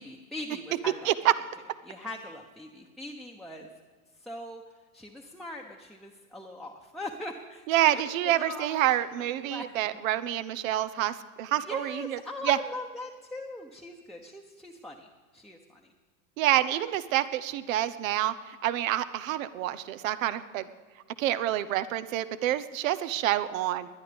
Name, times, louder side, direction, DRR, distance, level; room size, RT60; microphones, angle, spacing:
voice 1, 0.0-1.1 1.8-3.7 4.2-4.6 4.9-8.8 9.2-9.6 11.6-15.9, left 2 dB, ahead, -1 dB, 1.0 m, -41 dB
voice 2, 7.7-12.6 16.4-20.6 21.2-23.9, right 13 dB, 65° right, 14 dB, 0.9 m, -27 dB
20.5 x 11.0 x 3.5 m, 1.4 s
hypercardioid pair, 95°, 43 cm